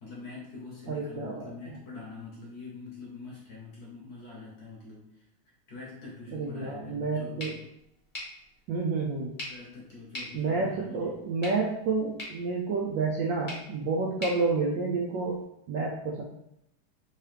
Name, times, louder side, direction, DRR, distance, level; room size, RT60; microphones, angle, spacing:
voice 1, 0.0-5.2 5.7-7.6 9.5-11.1, left 3 dB, 55° left, -4 dB, 1.2 m, -44 dB
voice 2, 0.9-1.5 6.3-7.5 8.7-9.3 10.3-15.4 15.7-16.2, right 4 dB, 75° right, -3 dB, 1.1 m, -29 dB
sound 1, 7.4-15.4, left 1 dB, 25° left, 1.2 m, -45 dB
3.6 x 3.0 x 3.2 m, 0.79 s
omnidirectional pair, 2.4 m